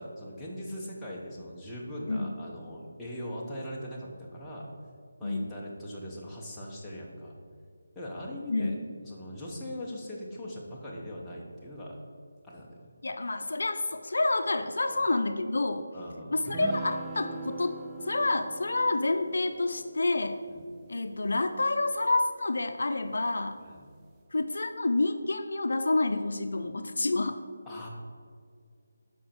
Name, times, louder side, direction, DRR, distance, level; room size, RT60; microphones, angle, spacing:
voice 1, 0.0-4.7 5.2-7.3 7.9-8.8 9.0-12.0 12.4-12.9 14.9-15.1 15.9-16.4 20.5-20.7 23.6-23.9 27.7-27.9, equal, 5° left, -6 dB, 0.9 m, -40 dB
voice 2, 2.1-2.4 5.2-5.6 8.5-8.8 13.0-15.9 16.3-20.4 20.9-23.6 24.3-27.4, left 2 dB, 70° left, 8 dB, 0.4 m, -28 dB
sound 1, 16.5-22.1, right 3 dB, 15° right, 0.3 m, -42 dB
7.1 x 4.9 x 4.4 m, 2.1 s
figure-of-eight pair, 165°, 0 cm